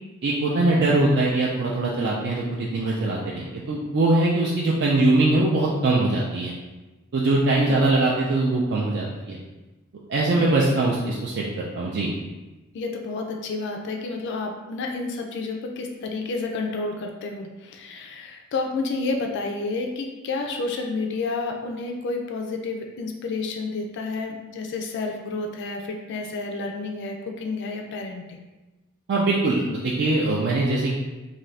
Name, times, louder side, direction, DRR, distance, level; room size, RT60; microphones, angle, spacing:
voice 1, 0.2-6.5 7.1-9.4 10.1-11.4 11.7-12.1 29.1-30.9, right 2 dB, 55° right, -4 dB, 0.4 m, -22 dB
voice 2, 7.7-8.0 10.3-10.4 10.7-10.9 12.7-28.4, left 3 dB, 55° left, 2 dB, 0.3 m, -30 dB
2.6 x 2.5 x 3.1 m, 1.1 s
head